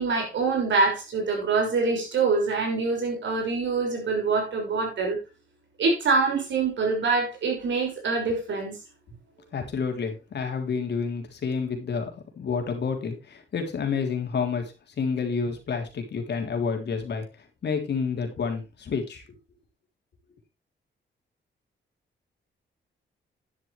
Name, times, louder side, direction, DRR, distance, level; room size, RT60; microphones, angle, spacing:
voice 1, 0.0-5.2 5.8-8.8, right 4 dB, 70° right, 6.1 m, -25 dB
voice 2, 9.5-12.1 12.4-14.6 15.0-17.2 17.6-19.2, left 5 dB, 60° left, 3.4 m, -29 dB
11.5 x 11.0 x 3.4 m
wide cardioid pair, 160°, 20 cm